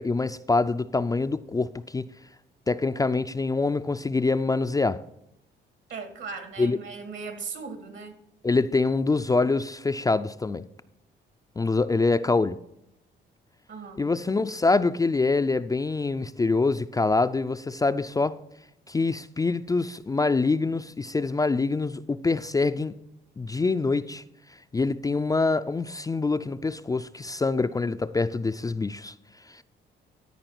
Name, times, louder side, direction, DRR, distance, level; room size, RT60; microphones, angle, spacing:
voice 1, 0.0-2.1 2.7-5.0 6.6-6.8 8.4-10.6 11.6-12.6 14.0-18.4 18.9-22.9 23.4-24.2 24.7-29.1 29.5-29.6, left 3 dB, 20° left, 0.4 m, -25 dB
voice 2, 5.9-8.1 13.7-14.0, right 5 dB, 70° right, 2.2 m, -38 dB
13.5 x 4.8 x 5.9 m
cardioid pair, 90°, 20 cm